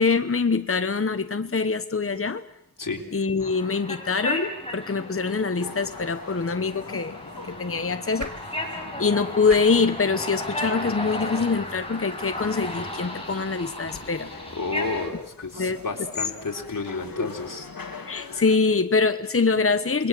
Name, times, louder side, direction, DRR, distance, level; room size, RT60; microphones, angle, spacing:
voice 1, 0.0-2.4 3.1-7.2 7.6-8.3 9.0-14.3 15.6-15.8 17.2-17.3 18.1-20.1, left 4 dB, 40° left, 10 dB, 1.1 m, -24 dB
sound 1, 3.4-15.1, left 1 dB, 15° left, 7.5 m, -35 dB
sound 2, 5.6-18.6, left 4 dB, 90° left, 2.4 m, -43 dB
sound 3, 6.4-12.6, right 3 dB, 60° right, 4.4 m, -47 dB
voice 2, 14.5-17.7, left 3 dB, 70° left, 1 dB, 4.1 m, -31 dB
28.5 x 22.0 x 7.7 m, 0.76 s
wide cardioid pair, 60°, 34 cm